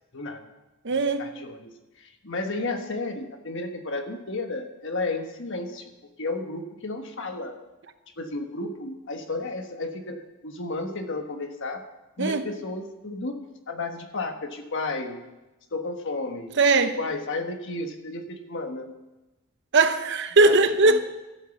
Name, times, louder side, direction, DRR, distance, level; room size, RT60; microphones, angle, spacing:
voice 1, 0.1-0.5 1.2-5.9 6.2-7.6 8.2-11.9 12.2-15.2 15.7-16.5 17.0-18.9 20.4-20.6 20.9-21.0, left 2 dB, 60° left, 6 dB, 1.3 m, -33 dB
voice 2, 0.8-1.3 12.2-12.5 16.6-17.0 19.7-21.0, right 3 dB, 55° right, 9 dB, 0.9 m, -20 dB
13.5 x 8.3 x 7.1 m, 1.1 s
head